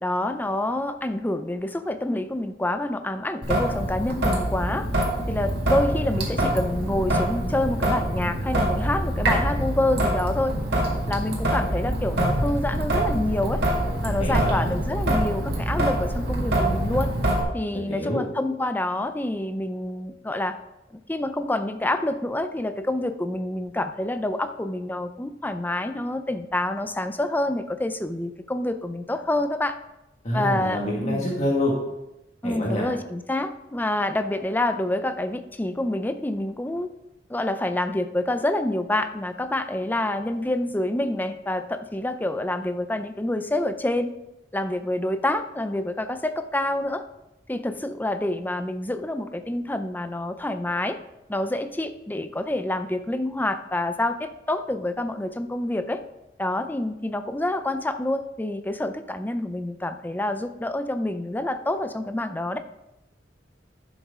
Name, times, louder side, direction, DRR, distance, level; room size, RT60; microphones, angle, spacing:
voice 1, 0.0-4.9 5.3-10.6 11.1-13.6 14.0-17.1 17.5-20.6 21.1-29.8 30.3-30.8 31.0-31.2 32.4-36.9 37.3-44.1 44.5-47.0 47.5-51.0 51.3-56.0 56.4-62.6, left 1 dB, 10° left, 9 dB, 0.5 m, -27 dB
Traffic noise roadway noise / Drip / Trickle dribble, 3.4-17.4, right 1 dB, 65° right, 2.2 m, -25 dB
voice 2, 14.2-14.7 17.7-18.2 30.2-31.7 32.4-32.9, left 1 dB, 40° left, -3 dB, 1.8 m, -26 dB
11.5 x 7.3 x 3.7 m, 0.93 s
head